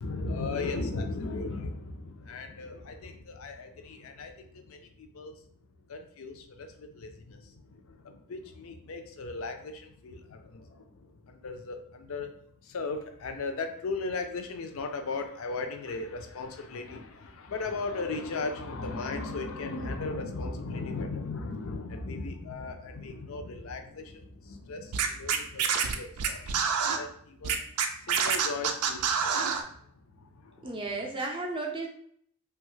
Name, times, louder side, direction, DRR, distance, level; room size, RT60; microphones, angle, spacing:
voice 1, 0.0-5.3 5.9-12.3 12.6-27.6 28.1-29.4 30.2-30.8, left 3 dB, 70° left, 6 dB, 0.4 m, -37 dB
Scratching (performance technique), 24.9-27.0 27.4-29.6, right 6 dB, 85° right, 0.4 m, -27 dB
voice 2, 30.6-31.9, right 3 dB, 25° right, 1 dB, 0.4 m, -33 dB
3.0 x 2.4 x 3.1 m, 0.63 s
head